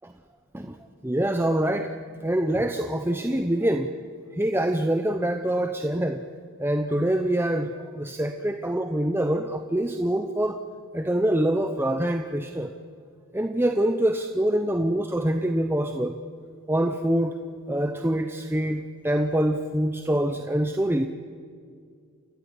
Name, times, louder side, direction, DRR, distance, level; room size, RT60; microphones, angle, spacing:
voice 1, 1.0-1.9 2.2-3.9 4.3-6.2 6.6-10.6 10.9-12.7 13.3-16.2 16.7-17.4 17.7-21.1, right 1 dB, 10° right, 6 dB, 0.8 m, -25 dB
29.0 x 14.0 x 9.9 m, 2.2 s
head